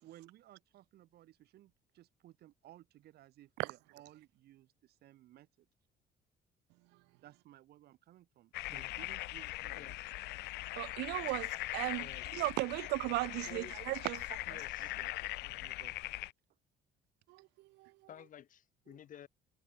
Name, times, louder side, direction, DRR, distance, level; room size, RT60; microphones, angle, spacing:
voice 1, 0.0-5.5 7.2-10.0 14.8-16.0, right 14 dB, 70° right, 2.0 m, -59 dB
sound 1, 8.5-16.3, left 19 dB, 80° left, 0.7 m, -41 dB
voice 2, 10.8-14.6 17.3-17.9, right 23 dB, 90° right, 0.4 m, -37 dB
voice 3, 12.0-12.4 13.4-13.7 14.5-14.9 18.1-19.3, left 10 dB, 50° left, 1.8 m, -53 dB
cardioid pair, 110°, 17 cm